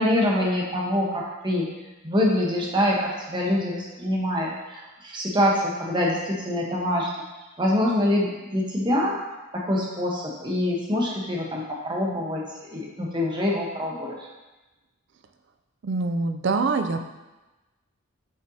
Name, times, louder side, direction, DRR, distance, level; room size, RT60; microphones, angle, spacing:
voice 1, 0.0-1.7 2.0-7.1 7.6-9.2 9.5-14.2, left 1 dB, 20° right, -3 dB, 1.0 m, -25 dB
voice 2, 15.8-17.0, right 3 dB, 55° right, 6 dB, 0.4 m, -24 dB
6.7 x 5.4 x 2.8 m, 1.1 s
head